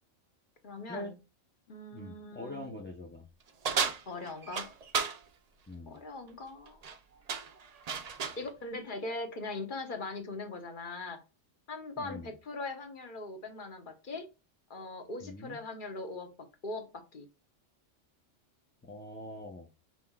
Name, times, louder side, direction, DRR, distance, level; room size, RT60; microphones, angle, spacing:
voice 1, 0.6-1.1 1.7-2.8 4.1-4.7 5.9-6.8 8.4-11.2 11.7-14.2 14.7-16.3 16.6-17.3, left 2 dB, 40° left, 1.1 m, -40 dB
voice 2, 1.9-3.3 5.7-6.0 12.0-12.3 15.2-15.6 18.8-19.7, left 1 dB, 20° left, 0.3 m, -43 dB
sound 1, 3.6-5.2 6.7-7.0 7.3-8.4, right 6 dB, 60° right, 0.4 m, -33 dB
5.7 x 3.7 x 2.3 m
omnidirectional pair, 1.3 m